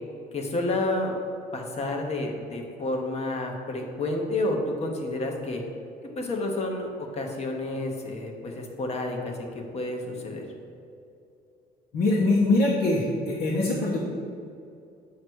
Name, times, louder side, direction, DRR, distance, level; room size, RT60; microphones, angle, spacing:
voice 1, 0.3-1.2 1.5-5.6 6.1-10.4, left 2 dB, 40° left, 2 dB, 1.2 m, -30 dB
voice 2, 11.9-14.0, left 2 dB, 70° left, -7 dB, 1.3 m, -23 dB
8.1 x 3.1 x 6.3 m, 2.6 s
cardioid pair, 110°, 17 cm